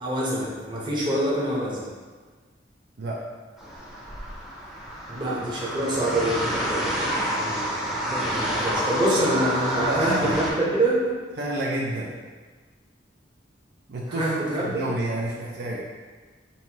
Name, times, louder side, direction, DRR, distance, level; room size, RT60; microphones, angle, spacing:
voice 1, 0.0-1.8 5.1-11.1 14.1-14.8, right 1 dB, 25° right, -6 dB, 0.9 m, -26 dB
sound 1, 3.6-10.5, equal, ahead, 0.6 m, -29 dB
voice 2, 9.9-10.4 11.4-12.1 13.9-14.3 14.6-15.8, right 1 dB, 65° right, -3 dB, 0.5 m, -29 dB
5.4 x 2.6 x 2.9 m, 1.4 s
head